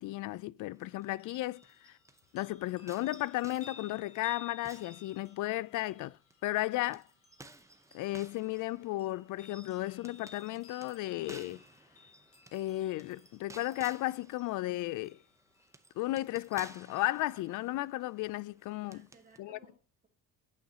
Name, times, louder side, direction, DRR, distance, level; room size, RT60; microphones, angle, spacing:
voice 1, 0.0-1.6 2.3-6.2 6.4-7.0 7.9-11.6 12.5-15.2 16.0-19.1 19.4-19.6, left 17 dB, 60° left, 0.5 m, -34 dB
sound 1, 0.7-2.4 2.9-5.7 6.3-19.4, right 2 dB, 10° right, 0.7 m, -57 dB
sound 2, 0.8-15.8 16.3-16.4, left 5 dB, 40° left, 2.5 m, -57 dB
voice 2, 18.8-20.1, right 4 dB, 25° right, 2.5 m, -62 dB
9.2 x 5.6 x 2.8 m
cardioid pair, 120°, 34 cm